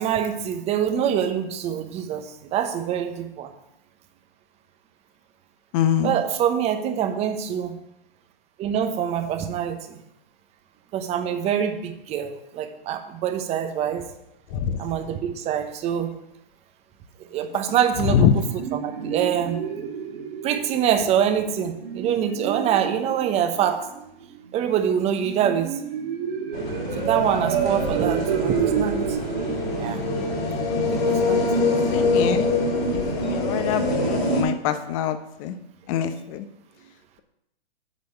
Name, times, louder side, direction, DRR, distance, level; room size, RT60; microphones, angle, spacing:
voice 1, 0.0-3.5 6.0-7.7 8.6-10.0 10.9-14.1 14.8-16.1 17.3-19.6 20.4-23.9 24.5-25.7 27.0-29.0 29.8-30.0 30.9-31.6, right 9 dB, 20° right, 7 dB, 0.9 m, -25 dB
voice 2, 5.7-6.2 14.5-14.8 18.1-18.3 31.9-32.4 32.9-35.5 35.9-36.4, left 9 dB, 35° left, 10 dB, 0.8 m, -24 dB
sound 1, 18.1-31.7, right 7 dB, 55° right, 1.6 m, -30 dB
sound 2, 26.5-34.4, left 2 dB, 70° left, 4.0 m, -24 dB
8.3 x 5.2 x 6.8 m, 0.83 s
hypercardioid pair, 135°, 31 cm